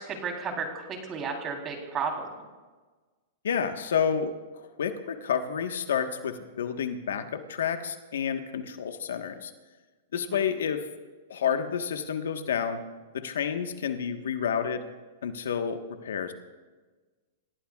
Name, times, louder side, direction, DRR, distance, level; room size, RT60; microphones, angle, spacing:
voice 1, 0.0-2.3 10.1-10.5, right 5 dB, 30° right, 2 dB, 3.7 m, -33 dB
voice 2, 3.4-9.5 10.1-10.8 11.3-12.8 13.1-14.8 15.2-16.3, left 7 dB, 85° left, 7 dB, 1.4 m, -30 dB
28.0 x 17.0 x 2.5 m, 1.3 s
hypercardioid pair, 125°, 0 cm